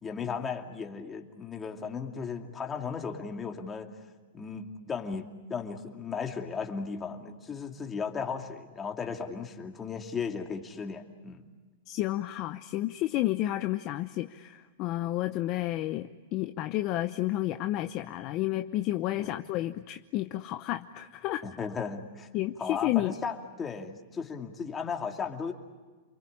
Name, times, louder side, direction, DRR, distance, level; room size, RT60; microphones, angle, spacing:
voice 1, 0.0-3.9 4.3-11.4 19.2-19.3 21.4-22.3 22.6-25.5, left 5 dB, 15° left, 3 dB, 2.5 m, -36 dB
voice 2, 11.9-21.4 22.3-23.1, left 15 dB, 35° left, 8 dB, 0.9 m, -31 dB
29.5 x 23.0 x 8.7 m, 1.4 s
supercardioid pair, 150°, 0 cm